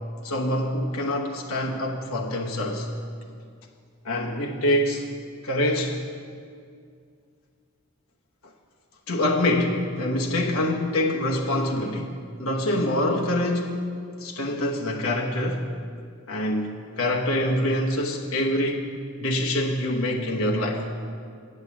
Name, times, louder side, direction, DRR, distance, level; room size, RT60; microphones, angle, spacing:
voice 1, 0.2-2.9 4.0-5.0 5.4-6.0 9.1-13.9 14.2-15.6 16.3-18.9 19.2-20.9, left 1 dB, 85° left, 0 dB, 1.0 m, -25 dB
8.0 x 7.3 x 8.1 m, 2.2 s
head